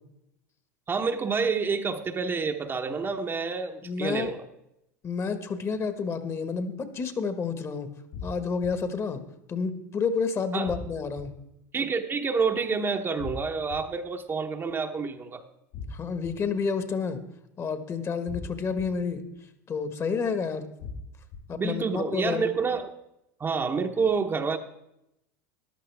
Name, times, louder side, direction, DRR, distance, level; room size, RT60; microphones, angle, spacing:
voice 1, 0.9-4.4 10.5-10.7 11.7-15.4 21.5-22.9 23.4-24.6, right 5 dB, 25° right, 5 dB, 0.9 m, -28 dB
voice 2, 3.8-4.3 5.0-7.9 8.2-9.2 9.5-11.4 15.9-17.2 17.6-19.2 19.7-20.7 21.5-22.4, left 5 dB, 30° left, 10 dB, 1.4 m, -29 dB
sound 1, 8.1-8.7 10.7-11.2 13.2-13.8 15.7-16.3 18.3-18.8 20.8-21.4, left 4 dB, 70° left, 4.7 m, -38 dB
14.5 x 11.0 x 3.5 m, 0.84 s
hypercardioid pair, 90°, 9 cm